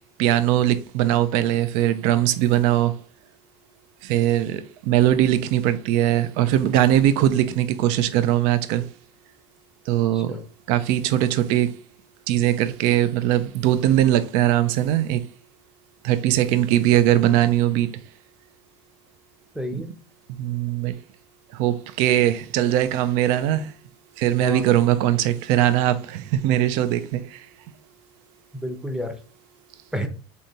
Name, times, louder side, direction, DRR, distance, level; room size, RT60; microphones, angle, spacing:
voice 1, 0.2-3.0 4.0-8.9 9.9-10.4 10.7-11.8 12.3-15.3 16.0-18.0 19.7-19.8 20.3-21.0 21.5-23.7 24.2-27.5, right 12 dB, 65° right, 0.4 m, -21 dB
voice 2, 10.1-10.4 19.5-20.0 24.4-24.8 28.5-29.2 29.9-30.1, equal, 5° right, 0.7 m, -30 dB
3.3 x 2.7 x 2.7 m
hypercardioid pair, 90°, 14 cm